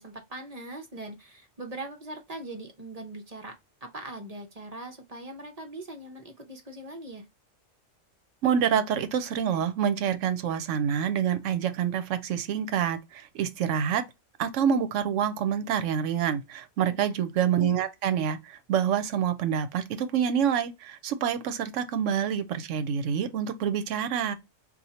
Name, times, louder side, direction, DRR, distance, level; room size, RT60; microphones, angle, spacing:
voice 1, 0.0-3.5 3.8-7.2 16.8-17.2, right 2 dB, 40° right, 0.6 m, -41 dB
voice 2, 8.4-14.0 14.4-24.3, right 8 dB, 75° right, 0.9 m, -27 dB
2.8 x 2.4 x 4.1 m
omnidirectional pair, 1.3 m